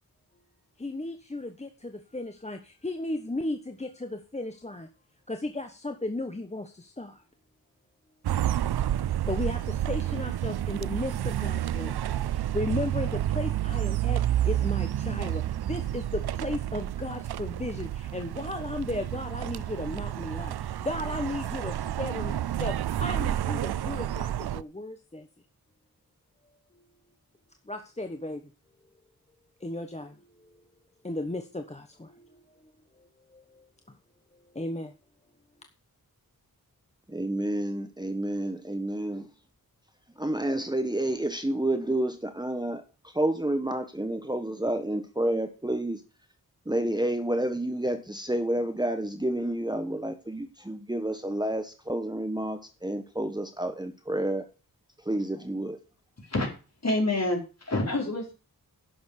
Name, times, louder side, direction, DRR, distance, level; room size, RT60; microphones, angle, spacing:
voice 1, 0.8-4.9 5.3-7.2 9.2-25.3 26.7-26.8 27.6-28.5 29.6-30.6 31.0-32.6 33.0-34.0 34.3-34.9, left 2 dB, 20° left, 6 dB, 1.1 m, -35 dB
sound 1, 8.2-24.6, right 12 dB, 85° right, 0.5 m, -30 dB
voice 2, 37.1-39.3 40.2-42.8 43.1-46.0 46.7-54.4 55.0-55.8, right 1 dB, 10° right, 7 dB, 1.3 m, -29 dB
voice 3, 56.8-58.3, left 2 dB, 45° left, 1 dB, 4.7 m, -27 dB
11.0 x 7.1 x 6.7 m, 0.34 s
wide cardioid pair, 95°, 37 cm